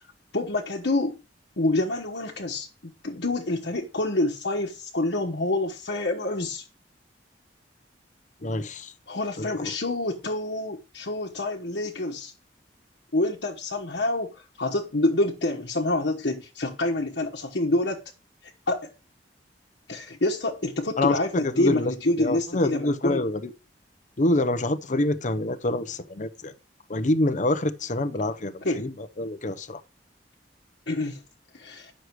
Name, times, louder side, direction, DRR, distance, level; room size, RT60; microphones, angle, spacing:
voice 1, 0.3-1.2 1.6-2.7 3.0-6.6 9.1-12.3 13.1-18.0 18.7-18.9 19.9-23.3 28.6-28.9 30.9-31.2 31.5-31.9, left 2 dB, 70° left, 1.3 m, -27 dB
voice 2, 8.4-8.9 9.4-9.8 21.0-21.2 21.4-21.9 22.2-23.5 24.2-26.5 26.9-29.8, left 2 dB, 45° left, 0.8 m, -26 dB
9.8 x 6.5 x 4.7 m
head